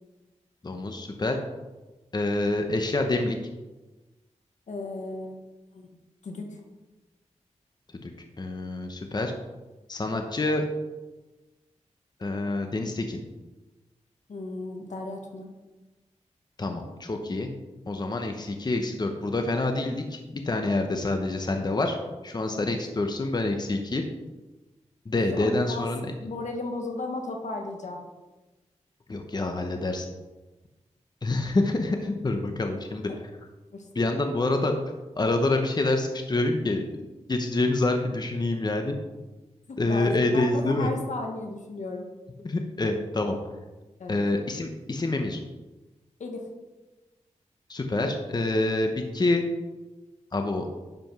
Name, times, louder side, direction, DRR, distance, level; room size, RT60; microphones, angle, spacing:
voice 1, 0.6-1.4 2.1-3.4 7.9-8.1 8.4-9.3 9.9-10.6 12.2-13.2 16.6-17.5 17.9-22.0 22.2-24.0 25.1-26.1 29.1-30.1 31.2-33.1 33.9-34.8 35.2-36.8 37.3-38.9 39.8-40.9 42.4-43.4 44.1-45.4 47.7-49.4 50.3-50.7, left 2 dB, 35° left, 4 dB, 1.0 m, -27 dB
voice 2, 4.7-5.4 5.7-5.9 6.2-6.6 14.3-15.5 22.5-22.8 25.3-25.9 26.2-28.0 33.1-33.2 33.7-34.1 39.7-42.1 44.0-44.2 46.2-46.4, left 2 dB, 80° left, 2 dB, 1.6 m, -35 dB
10.5 x 5.1 x 6.1 m, 1.2 s
wide cardioid pair, 95°, 12 cm